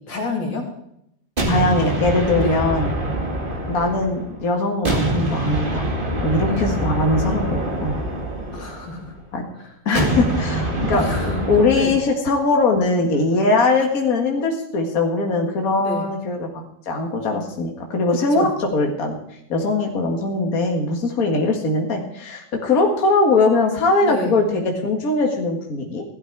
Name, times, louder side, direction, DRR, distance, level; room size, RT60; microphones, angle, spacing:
voice 1, 0.1-0.7 2.4-2.6 6.5-6.7 8.5-9.1 9.5-9.7 10.9-11.4 11.7-12.0 15.8-16.1 18.1-18.5 24.0-24.4, left 3 dB, 85° left, 1 dB, 3.2 m, -28 dB
sound 1, 1.4-4.4 4.8-9.1 9.9-12.1, right 1 dB, 30° right, 2.3 m, -24 dB
voice 2, 1.5-2.9 3.7-5.9 6.2-8.0 9.3-9.5 9.9-11.0 11.5-19.2 19.5-26.0, left 3 dB, 50° left, 2 dB, 2.2 m, -21 dB
15.5 x 12.5 x 4.8 m, 0.75 s
omnidirectional pair, 2.0 m